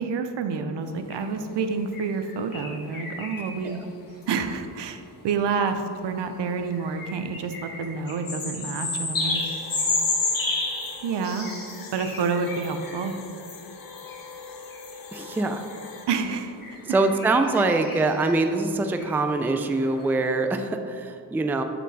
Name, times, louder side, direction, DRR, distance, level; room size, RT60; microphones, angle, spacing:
voice 1, 0.0-3.8 4.3-9.4 11.0-11.5 11.9-13.2 16.1-16.6, right 5 dB, 70° right, 7 dB, 0.7 m, -28 dB
sound 1, 1.1-1.2 1.9-3.7 4.2-4.3 6.7-13.1 14.1-14.2 14.7-14.8 16.6-20.1, left 3 dB, 50° left, 1.4 m, -31 dB
sound 2, 9.1-16.0, left 4 dB, 80° left, 0.9 m, -43 dB
voice 2, 15.1-15.7 16.8-21.6, right 3 dB, 5° right, 6 dB, 0.3 m, -24 dB
7.2 x 4.5 x 4.0 m, 2.4 s
cardioid pair, 70°, 43 cm